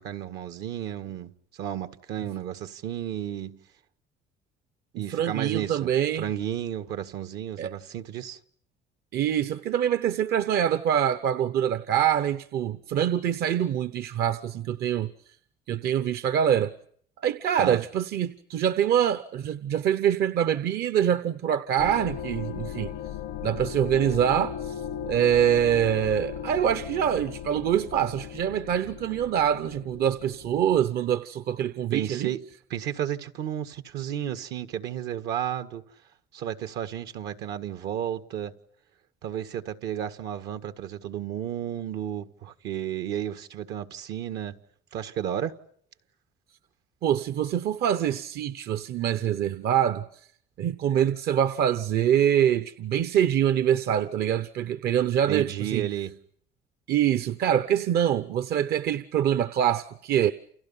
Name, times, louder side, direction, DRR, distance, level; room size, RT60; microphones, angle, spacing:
voice 1, 0.0-1.3 1.6-3.6 5.0-8.4 17.6-17.8 31.9-32.4 32.7-35.8 36.3-38.5 39.2-44.6 44.9-45.6 55.3-56.2, right 10 dB, 85° right, 1.8 m, -32 dB
voice 2, 5.1-6.2 7.6-7.7 9.1-15.1 15.7-16.7 17.2-22.9 23.4-32.3 47.0-50.1 50.6-55.9 56.9-60.3, right 10 dB, 70° right, 1.0 m, -25 dB
sound 1, 21.8-30.9, left 9 dB, 85° left, 1.0 m, -37 dB
29.5 x 29.0 x 5.7 m
cardioid pair, 110°, 17 cm